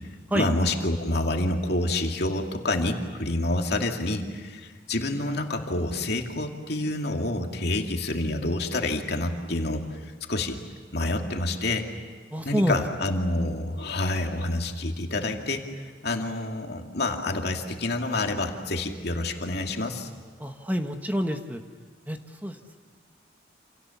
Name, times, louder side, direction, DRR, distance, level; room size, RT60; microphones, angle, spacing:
voice 1, 0.3-10.6 10.9-11.9 12.4-15.6 16.0-20.1, left 2 dB, 60° left, 3 dB, 2.5 m, -28 dB
voice 2, 12.3-12.8 20.4-21.6 22.1-22.8, equal, 10° right, 5 dB, 1.3 m, -28 dB
28.5 x 28.5 x 7.1 m, 1.5 s
head